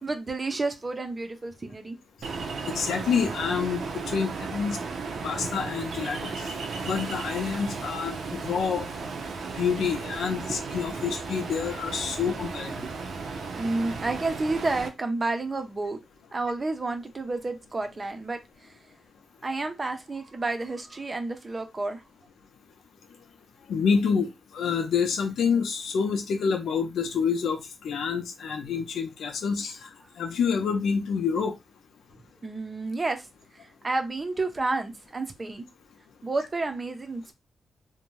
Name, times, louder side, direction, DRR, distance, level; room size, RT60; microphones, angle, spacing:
voice 1, 0.0-2.0 6.3-6.4 12.8-12.9 13.6-16.0 16.3-18.7 19.4-22.0 32.4-33.3 33.6-35.6 36.2-37.3, right 3 dB, 30° right, 0.5 m, -30 dB
Ocean, 2.2-14.9, right 4 dB, 75° right, 0.6 m, -35 dB
voice 2, 2.7-4.8 5.2-6.5 6.8-8.9 9.5-12.8 23.7-29.9 30.2-31.5, left 6 dB, 85° left, 0.6 m, -27 dB
2.6 x 2.2 x 3.0 m
wide cardioid pair, 125°, 0 cm